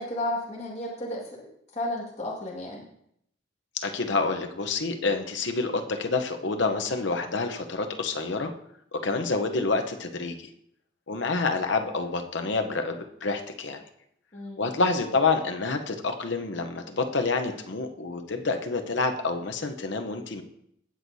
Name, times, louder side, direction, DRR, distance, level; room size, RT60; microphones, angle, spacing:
voice 1, 0.0-2.8 14.3-14.7, left 1 dB, 35° left, -5 dB, 1.9 m, -33 dB
voice 2, 3.8-8.5 8.9-10.5 11.1-13.8 14.6-20.4, left 3 dB, 65° left, 6 dB, 0.8 m, -28 dB
17.0 x 6.3 x 2.7 m, 0.74 s
head